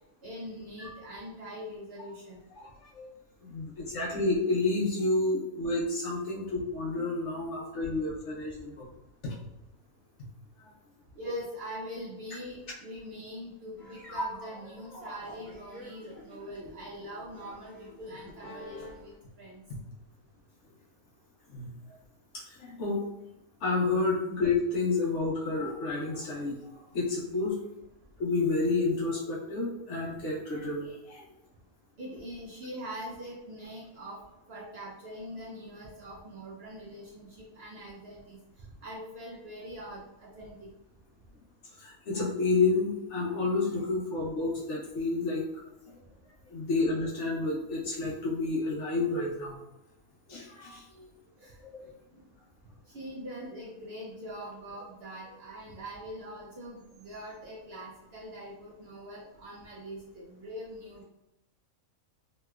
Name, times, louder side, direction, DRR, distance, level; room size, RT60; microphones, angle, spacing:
voice 1, 0.2-2.4 11.1-19.6 32.0-34.2 34.5-38.4 38.8-40.7 51.4-51.6 52.1-52.3 52.9-61.0, equal, 60° right, -5 dB, 0.7 m, -43 dB
voice 2, 2.6-3.1 3.4-8.9 9.2-9.3 21.5-21.7 22.3-23.0 23.6-27.6 28.2-31.2 41.8-45.4 46.5-49.6 50.3-51.1 51.6-51.9, left 3 dB, 60° left, -3 dB, 0.8 m, -30 dB
sound 1, 13.8-19.1, right 1 dB, ahead, 0.6 m, -44 dB
3.0 x 2.9 x 2.3 m, 0.96 s
omnidirectional pair, 1.5 m